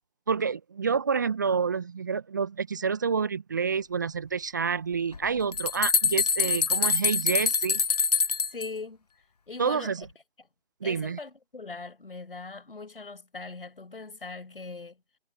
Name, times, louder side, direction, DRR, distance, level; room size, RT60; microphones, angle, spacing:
voice 1, 0.3-7.8 9.6-10.1 10.8-11.2, right 6 dB, 20° right, 0.9 m, -28 dB
sound 1, 5.1-8.7, left 5 dB, 40° left, 0.9 m, -25 dB
voice 2, 8.5-9.0 9.5-9.9 10.8-15.2, left 4 dB, 60° left, 5.2 m, -40 dB
figure-of-eight pair, 155°, 32 cm